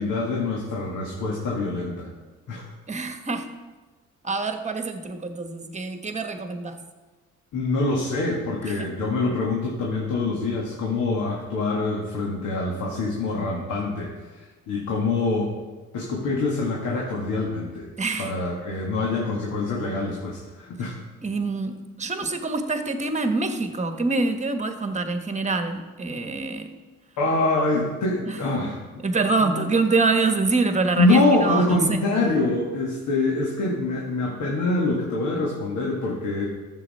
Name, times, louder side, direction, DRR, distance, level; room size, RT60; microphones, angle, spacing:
voice 1, 0.0-2.1 2.5-2.6 7.5-15.5 15.9-17.9 18.2-20.9 27.2-28.8 29.4-29.6 31.0-36.5, left 2 dB, 85° left, -2 dB, 1.9 m, -25 dB
voice 2, 2.9-3.5 4.2-6.8 8.6-8.9 18.0-18.3 21.2-26.7 28.3-28.4 29.0-32.0, right 3 dB, 25° right, 7 dB, 1.2 m, -25 dB
13.0 x 7.4 x 4.3 m, 1.2 s
cardioid pair, 90°, 30 cm